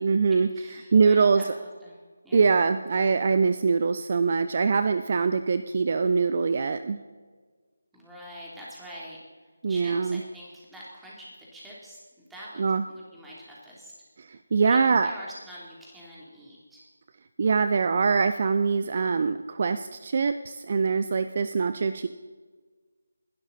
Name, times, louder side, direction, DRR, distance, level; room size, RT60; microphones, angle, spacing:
voice 1, 0.0-0.5 0.9-1.5 2.3-7.0 9.6-10.2 12.6-12.8 14.2-15.1 17.4-22.1, right 5 dB, 45° right, 10 dB, 0.6 m, -23 dB
voice 2, 0.5-2.0 2.2-2.5 7.9-9.2 9.7-13.9 14.6-16.8 18.7-19.0, equal, 5° right, -6 dB, 3.3 m, -45 dB
21.0 x 12.0 x 4.2 m, 1.4 s
figure-of-eight pair, 160°, 0 cm